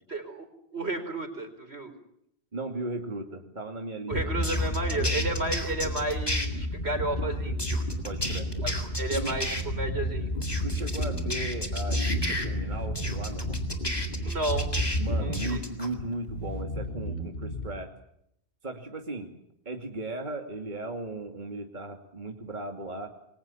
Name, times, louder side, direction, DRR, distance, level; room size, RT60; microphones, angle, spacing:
voice 1, 0.1-0.5 0.7-1.9 4.1-7.6 8.6-10.3 14.2-14.7 15.2-15.6, right 2 dB, 80° right, 7 dB, 4.8 m, -32 dB
voice 2, 2.5-4.2 4.5-4.6 8.0-8.5 9.2-9.3 10.6-13.6 15.0-17.9 18.6-19.3 19.6-23.2, right 2 dB, 45° right, 3 dB, 2.7 m, -36 dB
Heavy Bubbles, 4.1-15.3, equal, 50° left, 5.6 m, -31 dB
sound 1, 4.4-6.5 7.6-9.6 10.4-12.5 13.0-15.0 15.3-15.9, left 1 dB, 20° left, 3.7 m, -33 dB
Bass guitar, 8.2-8.9 9.3-9.4 9.7-11.3 12.1-13.7 14.5-15.6 15.9-17.8, equal, 90° left, 4.1 m, -36 dB
29.0 x 23.0 x 7.2 m, 0.76 s
omnidirectional pair, 1.1 m